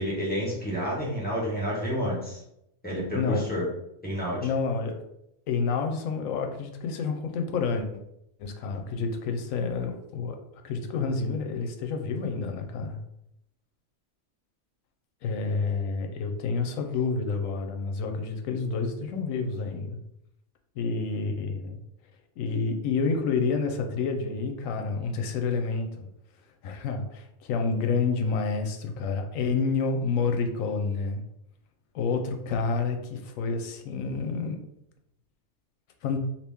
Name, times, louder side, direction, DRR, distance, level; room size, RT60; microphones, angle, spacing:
voice 1, 0.0-2.4 2.8-3.7 4.0-4.5, equal, 10° left, -7 dB, 0.9 m, -29 dB
voice 2, 3.1-3.5 4.4-5.0 5.5-7.9 8.4-10.4 10.6-13.0 15.2-20.0 20.8-21.8 22.4-26.1 26.6-31.2 31.9-34.6 36.0-36.2, left 4 dB, 80° left, 5 dB, 1.0 m, -29 dB
2.9 x 2.6 x 3.4 m, 0.81 s
omnidirectional pair, 1.4 m